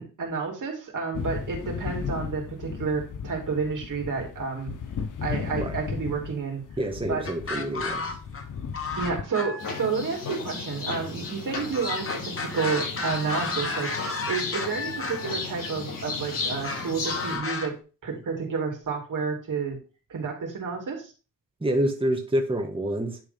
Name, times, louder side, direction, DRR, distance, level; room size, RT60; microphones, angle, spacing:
voice 1, 0.0-4.7 5.2-6.6 7.1-7.2 9.0-19.8 20.1-21.1, right 5 dB, 70° right, 0 dB, 3.2 m, -30 dB
sound 1, 1.1-9.2, left 6 dB, 70° left, 1.1 m, -35 dB
voice 2, 6.8-8.2 21.6-23.2, right 1 dB, 15° right, 2 dB, 1.7 m, -27 dB
sound 2, 7.2-8.4 8.7-9.9 11.7-15.3 16.6-17.7, left 3 dB, 40° left, 1.8 m, -32 dB
sound 3, 9.6-17.4, left 4 dB, 90° left, 4.9 m, -34 dB
10.5 x 3.8 x 5.4 m, 0.34 s
cardioid pair, 90°, 32 cm